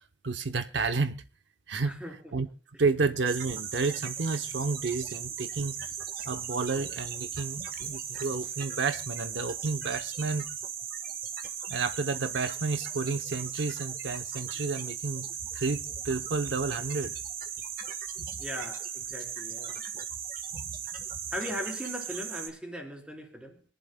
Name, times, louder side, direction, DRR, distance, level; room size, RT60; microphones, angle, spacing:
voice 1, 0.2-1.2 1.7-2.0 2.3-2.5 2.8-5.7 6.3-10.4 11.7-15.3 15.5-17.1 18.2-18.3 20.5-20.7, right 4 dB, 75° right, 0.7 m, -31 dB
voice 2, 1.8-2.3 18.4-19.8 21.3-23.6, equal, 5° right, 3.3 m, -39 dB
sound 1, 3.3-22.5, right 8 dB, 55° right, 1.3 m, -37 dB
26.5 x 11.0 x 2.2 m
head